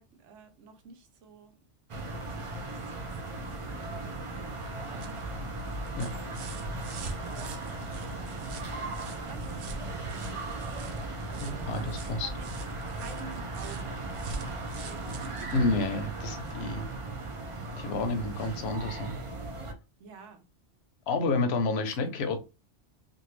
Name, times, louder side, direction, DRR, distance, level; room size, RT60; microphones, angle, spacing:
voice 1, 0.0-1.6 2.0-5.5 7.2-10.9 11.3-12.6 12.9-15.5 20.0-20.4, right 5 dB, 90° right, 1.0 m, -51 dB
sound 1, 1.9-19.7, right 2 dB, 55° right, 0.3 m, -37 dB
sound 2, 5.0-16.7 18.0-18.1, right 4 dB, 70° right, 0.8 m, -46 dB
voice 2, 11.4-12.3 15.5-16.9 17.8-19.2 21.1-22.4, left 3 dB, 65° left, 0.9 m, -29 dB
2.6 x 2.6 x 3.1 m
omnidirectional pair, 1.2 m